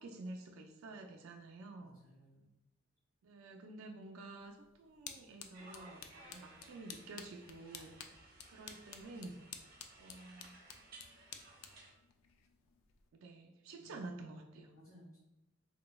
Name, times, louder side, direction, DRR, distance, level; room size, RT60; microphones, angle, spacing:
voice 1, 0.0-2.0 3.2-7.9 8.5-9.4 10.0-10.6 13.1-14.7, right 2 dB, 70° right, 3 dB, 0.3 m, -50 dB
voice 2, 1.8-2.5 13.8-14.0 14.7-15.2, equal, 40° left, -6 dB, 0.7 m, -60 dB
sound 1, 4.4-13.1, left 7 dB, 75° left, 0.3 m, -54 dB
sound 2, 5.5-11.9, right 2 dB, 45° right, 0.7 m, -58 dB
3.6 x 3.0 x 2.2 m, 0.96 s
head